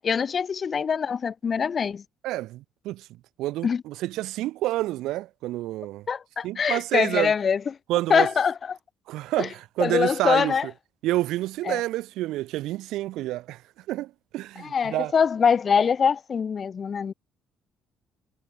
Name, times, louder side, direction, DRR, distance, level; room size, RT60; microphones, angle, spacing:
voice 1, 0.0-2.0 3.6-3.8 6.1-7.6 8.1-8.8 9.4-9.5 9.8-10.7 11.7-11.8 14.6-17.1, left 6 dB, 35° left, 4.5 m, -23 dB
voice 2, 2.2-3.0 3.4-6.0 6.4-7.3 7.9-8.3 9.1-10.5 11.0-13.6 13.9-15.1, right 16 dB, 85° right, 1.3 m, -28 dB
cardioid pair, 125°, 0 cm